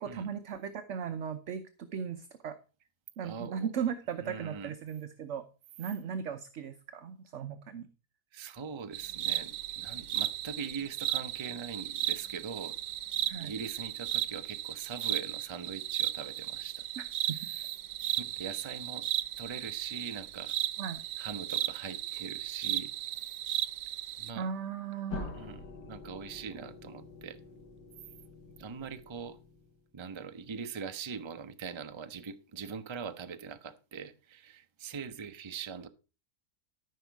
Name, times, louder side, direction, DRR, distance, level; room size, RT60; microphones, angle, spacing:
voice 1, 0.0-2.5 3.2-5.4 5.8-7.9 13.3-13.5 17.0-17.4 20.8-21.0 24.4-25.4, right 7 dB, 55° right, 1.0 m, -37 dB
voice 2, 3.2-3.7 4.2-4.8 8.3-12.8 13.4-16.9 17.5-17.6 18.0-19.0 19.4-20.5 21.2-22.9 24.2-24.5 25.3-27.4 28.6-29.4 29.9-35.9, right 6 dB, 30° right, 0.5 m, -42 dB
sound 1, 8.9-24.3, right 13 dB, 90° right, 1.3 m, -35 dB
sound 2, 25.1-29.9, left 4 dB, 85° left, 2.0 m, -46 dB
13.5 x 5.8 x 4.7 m
omnidirectional pair, 1.8 m